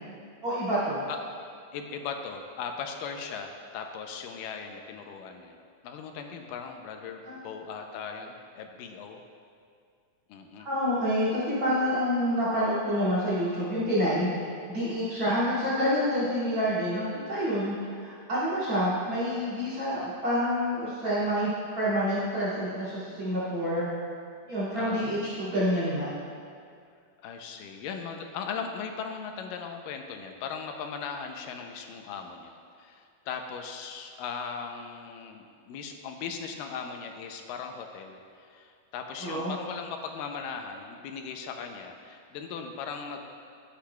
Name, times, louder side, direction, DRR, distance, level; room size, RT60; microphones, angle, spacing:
voice 1, 0.4-1.0 7.2-7.4 10.6-14.3 14.7-21.5 21.8-23.9 24.5-26.1 39.2-39.5, equal, 45° right, -10 dB, 3.3 m, -28 dB
voice 2, 1.7-5.6 5.8-9.2 10.3-10.7 15.3-15.4 24.7-25.1 27.2-43.3, left 6 dB, 85° left, 4 dB, 2.3 m, -38 dB
17.0 x 8.4 x 2.3 m, 2.3 s
omnidirectional pair, 3.9 m